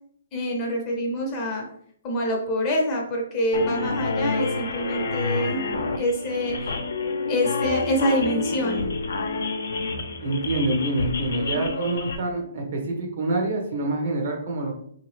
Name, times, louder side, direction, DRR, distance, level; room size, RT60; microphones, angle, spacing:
voice 1, 0.3-1.7 2.0-6.7 7.3-8.8, equal, 20° left, -1 dB, 0.7 m, -26 dB
sound 1, 3.5-12.2, left 3 dB, 75° left, 0.6 m, -28 dB
voice 2, 10.2-14.8, right 2 dB, 50° right, 2 dB, 1.0 m, -26 dB
3.5 x 2.8 x 3.1 m, 0.65 s
hypercardioid pair, 165°, 0 cm